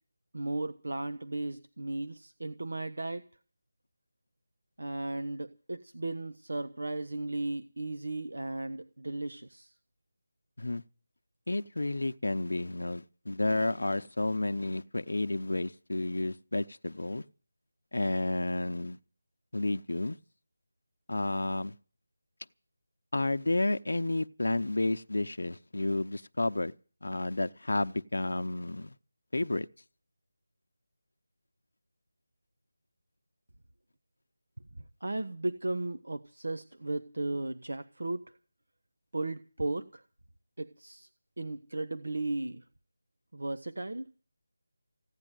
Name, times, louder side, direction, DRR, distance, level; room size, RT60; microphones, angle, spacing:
voice 1, 0.3-3.3 4.8-9.7 35.0-38.2 39.1-40.0 40.6-41.1 41.4-42.6 43.3-44.0, right 2 dB, 75° right, 1.1 m, -35 dB
voice 2, 11.5-17.2 17.9-19.0 19.5-20.2 21.1-21.7 23.1-26.7 27.0-28.9 29.3-29.7, left 2 dB, 80° left, 0.7 m, -31 dB
16.0 x 9.8 x 9.1 m
figure-of-eight pair, 175°, 0 cm